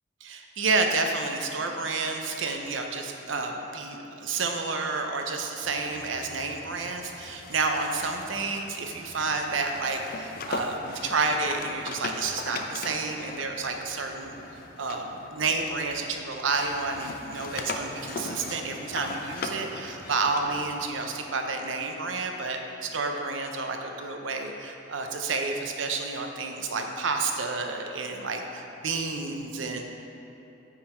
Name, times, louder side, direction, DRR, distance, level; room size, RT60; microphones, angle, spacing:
voice 1, 0.2-29.8, right 3 dB, 80° right, 4 dB, 0.6 m, -30 dB
sound 1, 5.6-16.2 16.5-20.9, left 3 dB, 50° left, 0.4 m, -40 dB
9.0 x 3.8 x 4.4 m, 2.9 s
head